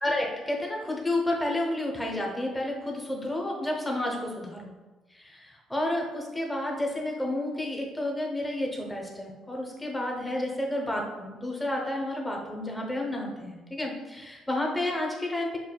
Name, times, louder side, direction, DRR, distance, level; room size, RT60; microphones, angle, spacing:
voice 1, 0.0-4.7 5.1-15.6, left 1 dB, 10° left, -1 dB, 0.9 m, -31 dB
6.3 x 2.5 x 2.3 m, 1.2 s
cardioid pair, 100°, 0 cm